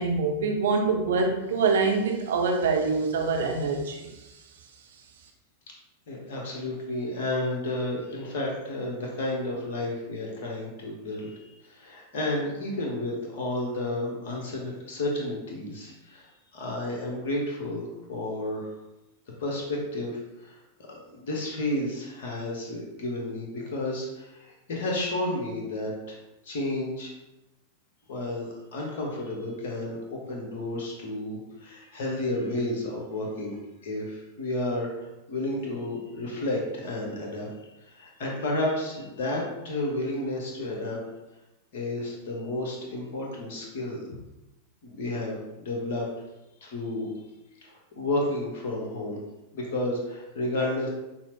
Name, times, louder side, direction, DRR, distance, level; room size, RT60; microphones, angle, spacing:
voice 1, 0.0-4.1, right 4 dB, 60° right, 2 dB, 0.6 m, -25 dB
voice 2, 6.1-11.3 11.6-18.7 19.4-20.1 20.4-20.5 20.9-26.2 26.4-27.1 28.1-33.6 33.8-34.9 35.3-37.5 37.9-41.0 41.7-44.1 44.8-46.1 46.6-47.1 47.6-49.2 49.5-50.9, left 1 dB, 55° left, -1 dB, 1.0 m, -31 dB
5.5 x 2.0 x 3.0 m, 0.95 s
figure-of-eight pair, 90°, 0 cm